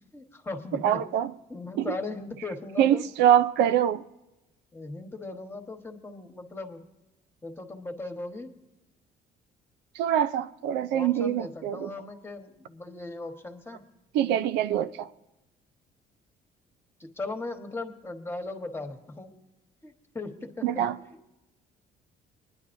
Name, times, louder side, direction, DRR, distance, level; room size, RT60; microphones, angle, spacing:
voice 1, 0.1-1.1 1.5-3.0 4.7-6.8 7.4-8.5 10.9-13.8 17.0-19.3 19.8-21.2, left 2 dB, 15° left, 1.3 m, -38 dB
voice 2, 0.8-1.3 1.8-1.9 2.8-4.0 10.0-11.9 14.1-15.1 20.6-21.0, right 10 dB, 85° right, 0.5 m, -24 dB
23.0 x 10.5 x 2.6 m
cardioid pair, 110°, 17 cm